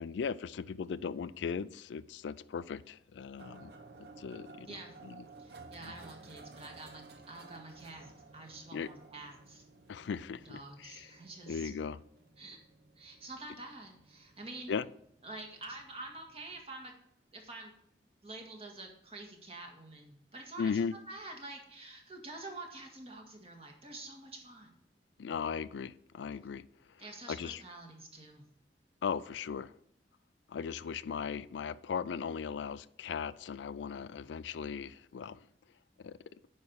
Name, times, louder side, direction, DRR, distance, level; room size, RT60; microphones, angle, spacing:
voice 1, 0.0-3.7 4.0-4.8 5.0-5.2 8.7-8.9 9.9-11.1 11.5-12.0 14.7-14.8 20.6-20.9 25.2-26.6 27.3-27.6 29.0-29.7 30.5-35.4 36.0-36.2, left 6 dB, 85° left, 16 dB, 0.4 m, -37 dB
sound 1, 3.4-16.7, right 3 dB, 65° right, 0.8 m, -55 dB
voice 2, 5.4-9.7 10.4-11.7 12.4-12.6 13.0-14.7 15.2-16.9 17.3-17.7 18.2-24.8 27.0-28.4, right 2 dB, 35° right, 2 dB, 1.8 m, -47 dB
9.6 x 5.5 x 4.6 m, 0.72 s
head